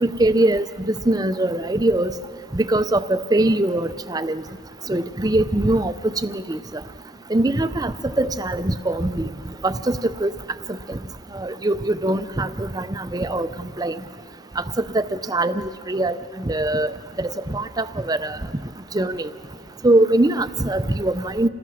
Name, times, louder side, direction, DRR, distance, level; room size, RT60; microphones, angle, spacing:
voice 1, 0.0-2.1 2.5-4.4 4.9-6.6 7.3-9.3 9.6-10.3 10.9-11.0 11.3-14.0 14.6-16.9 17.2-18.4 18.9-19.3 19.8-21.5, right 1 dB, 20° right, 12 dB, 0.5 m, -22 dB
27.5 x 19.5 x 6.3 m, 2.3 s
head